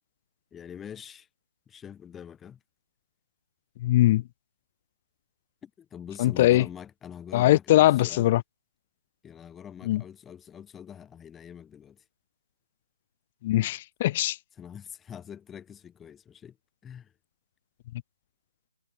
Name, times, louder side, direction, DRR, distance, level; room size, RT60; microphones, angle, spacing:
voice 1, 0.5-1.3 1.7-2.6 5.6-8.3 9.2-12.0 14.6-16.6 16.8-17.1, left 8 dB, 10° left, 5.9 m, -44 dB
voice 2, 3.8-4.2 6.2-6.7 7.3-8.4 9.8-10.0 13.4-14.4, left 15 dB, 35° left, 0.8 m, -21 dB
figure-of-eight pair, 145°, 0 cm